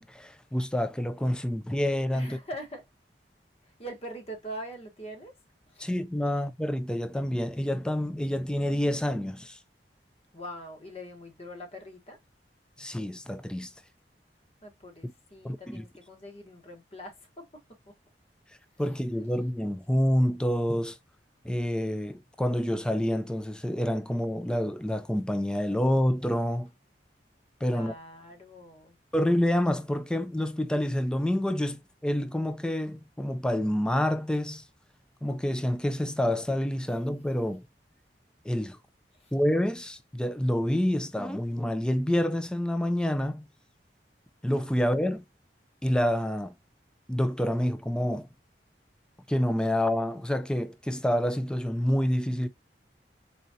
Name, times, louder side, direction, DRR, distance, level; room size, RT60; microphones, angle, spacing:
voice 1, 0.0-2.4 5.8-9.6 12.8-13.7 15.0-15.1 15.4-15.8 18.8-21.0 21.4-26.7 27.6-27.9 29.1-34.7 35.2-37.6 38.4-38.8 39.3-43.5 44.4-45.2 45.8-46.5 47.1-48.3 49.3-52.5, equal, 5° left, 0.4 m, -28 dB
voice 2, 2.1-2.8 3.8-5.3 5.7-5.9 10.3-12.2 14.6-17.9 27.7-29.0 39.2-39.3, equal, 35° left, 1.3 m, -43 dB
4.1 x 3.8 x 2.7 m
head